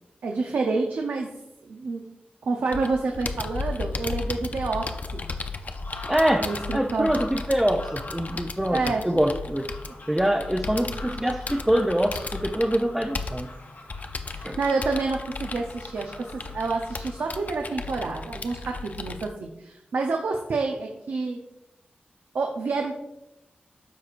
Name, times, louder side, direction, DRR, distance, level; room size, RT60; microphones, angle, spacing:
voice 1, 0.2-1.3 1.6-2.0 2.4-5.2 6.4-7.1 8.7-9.0 14.3-21.4 22.3-22.9, right 3 dB, 90° right, 2 dB, 0.6 m, -28 dB
Computer keyboard, 2.7-19.3, left 4 dB, 50° left, 0.5 m, -35 dB
sound 1, 4.8-17.6, left 2 dB, 80° left, 2.2 m, -45 dB
voice 2, 6.1-9.7 10.1-13.5 14.4-14.6, right 1 dB, 10° right, 2 dB, 0.5 m, -24 dB
12.5 x 4.5 x 2.5 m, 0.89 s
wide cardioid pair, 80°, 3 cm